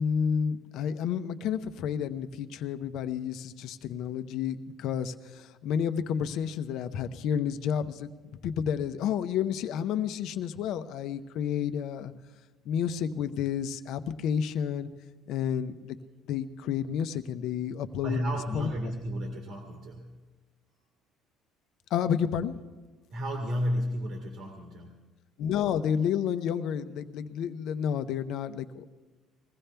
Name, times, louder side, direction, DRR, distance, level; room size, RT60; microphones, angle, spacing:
voice 1, 0.0-8.1 8.4-12.1 12.6-14.9 15.3-16.0 16.3-18.7 21.9-22.5 25.4-28.9, left 8 dB, 70° left, 10 dB, 0.8 m, -30 dB
voice 2, 18.0-20.2 23.1-25.1, equal, 65° right, 2 dB, 1.8 m, -32 dB
21.0 x 15.5 x 3.4 m, 1.3 s
cardioid pair, 115°, 0 cm